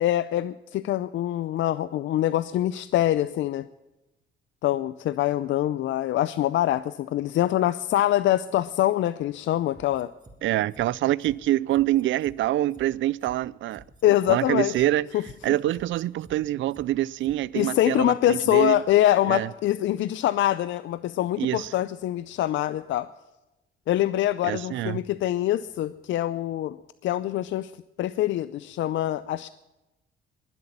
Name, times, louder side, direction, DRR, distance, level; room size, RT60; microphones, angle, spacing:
voice 1, 0.0-3.7 4.6-10.1 14.0-14.7 15.1-15.2 17.5-23.1 23.9-26.8 27.0-27.7 28.0-29.5, left 13 dB, 70° left, 0.5 m, -24 dB
sound 1, 9.8-10.4 10.7-10.9 11.2-11.4 11.7-12.4 12.7-12.9 13.2-13.4 13.7-14.4 14.7-14.9 15.2-15.4 15.7-16.4 16.7-16.9 17.2-17.4 17.7-17.8, right 2 dB, 20° right, 3.0 m, -50 dB
voice 2, 10.4-13.8 14.3-15.1 15.4-18.8 19.3-19.5 21.4-21.7 24.4-25.0, right 14 dB, 75° right, 0.5 m, -25 dB
21.5 x 8.0 x 7.2 m
cardioid pair, 90°, 20 cm